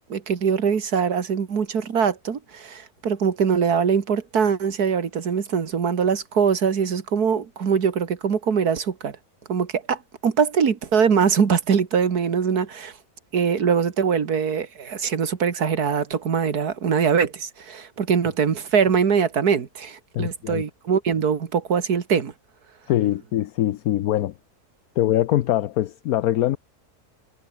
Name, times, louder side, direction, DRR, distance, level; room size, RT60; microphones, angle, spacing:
voice 1, 0.0-9.2 9.5-12.9 13.3-22.3, right 6 dB, 85° right, 2.3 m, -22 dB
voice 2, 20.1-20.6 22.9-24.3 25.0-26.6, left 13 dB, 75° left, 1.2 m, -23 dB
omnidirectional pair, 1.6 m